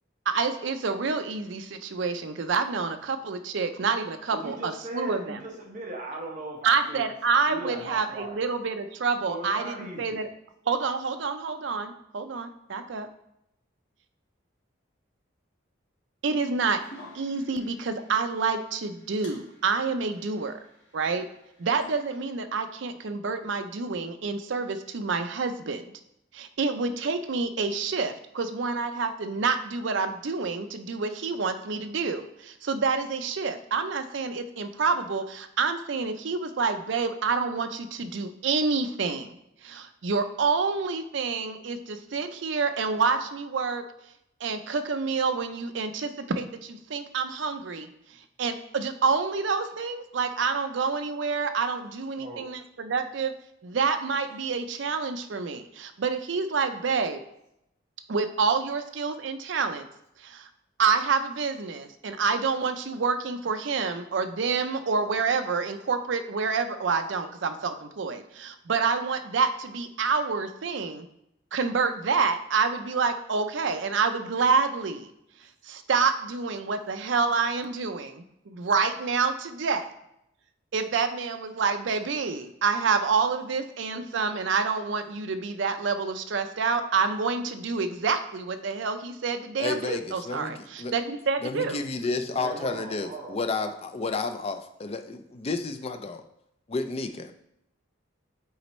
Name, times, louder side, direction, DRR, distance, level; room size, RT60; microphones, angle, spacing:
voice 1, 0.3-5.4 6.6-10.3 10.7-13.1 16.2-16.8 17.1-20.6 20.9-21.3 21.6-25.9 26.3-39.4 39.6-43.8 44.4-47.9 48.4-53.3 53.6-57.2 58.1-59.9 60.2-60.5 60.8-71.1 71.5-75.1 75.6-79.9 80.7-91.8, right 4 dB, 60° right, 8 dB, 0.5 m, -28 dB
voice 2, 4.3-7.1 7.5-8.4 9.3-10.2 52.2-52.5 92.4-93.5, right 1 dB, 40° right, -1 dB, 1.2 m, -38 dB
sound 1, 16.8-22.3, left 1 dB, 65° left, 1.9 m, -53 dB
voice 3, 89.6-90.9 91.4-96.2 96.7-97.3, left 3 dB, 30° left, 8 dB, 0.4 m, -31 dB
8.1 x 4.2 x 3.1 m, 0.80 s
head